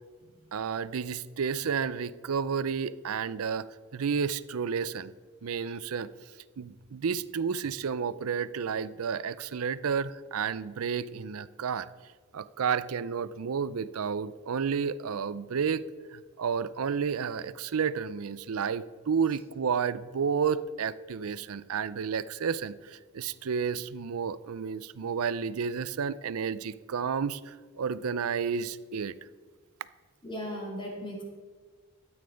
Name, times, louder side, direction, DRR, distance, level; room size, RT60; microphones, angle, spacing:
voice 1, 0.5-3.7 3.9-5.1 5.4-6.1 6.6-11.9 12.3-15.8 16.1-29.1, right 6 dB, 80° right, 17 dB, 0.5 m, -31 dB
voice 2, 30.2-31.2, equal, 20° left, 0 dB, 2.3 m, -37 dB
13.0 x 8.8 x 5.1 m, 1.5 s
head